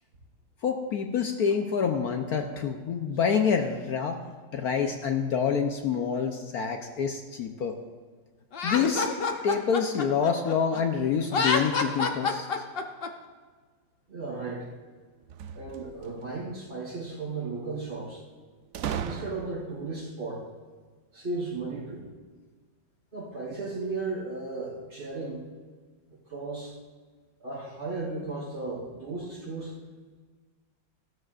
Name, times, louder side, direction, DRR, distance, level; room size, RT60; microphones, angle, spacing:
voice 1, 0.6-4.2 4.5-7.8 8.6-9.1 9.4-12.6, left 6 dB, 65° left, 4 dB, 1.2 m, -27 dB
Laughter, 8.5-10.8 11.2-13.1, left 4 dB, 45° left, 0.8 m, -27 dB
voice 2, 14.1-14.7 15.5-18.2 18.9-20.5 21.1-22.1 23.1-25.4 26.1-26.7 27.4-29.7, right 3 dB, 45° right, -7 dB, 4.5 m, -35 dB
sound 1, 15.2-16.3 18.7-19.8, right 8 dB, 85° right, 0.6 m, -36 dB
16.5 x 12.5 x 2.5 m, 1.5 s
omnidirectional pair, 1.9 m